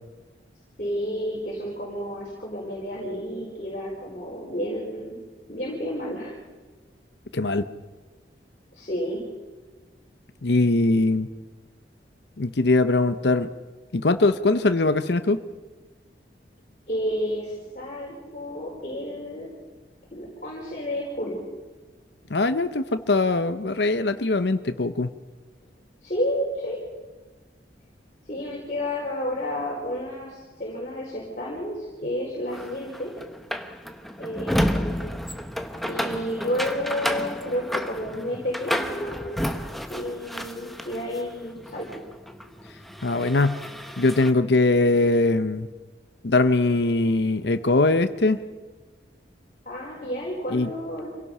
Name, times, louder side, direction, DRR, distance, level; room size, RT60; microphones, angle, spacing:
voice 1, 0.8-5.1 5.5-6.3 8.7-9.2 16.9-19.5 20.1-21.4 26.0-26.8 28.3-33.1 34.2-35.0 35.8-39.5 39.9-41.9 49.6-51.1, equal, 45° left, -5 dB, 4.8 m, -31 dB
voice 2, 7.3-7.6 10.4-11.3 12.4-13.5 13.9-15.4 22.3-25.1 43.0-43.6 44.0-45.7 46.2-48.4 50.5-50.7, left 2 dB, 75° left, 10 dB, 0.8 m, -21 dB
sound 1, 32.5-41.2 41.6-44.3, equal, ahead, 0.9 m, -31 dB
26.5 x 17.5 x 5.6 m, 1.3 s
head